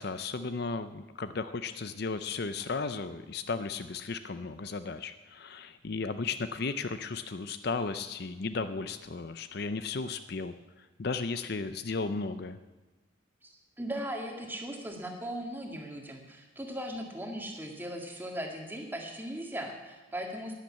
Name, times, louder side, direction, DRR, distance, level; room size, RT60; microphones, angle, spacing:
voice 1, 0.0-12.6, left 4 dB, 50° left, 11 dB, 0.6 m, -35 dB
voice 2, 13.4-20.5, equal, 10° right, 2 dB, 1.9 m, -38 dB
12.0 x 10.5 x 8.6 m, 1.2 s
head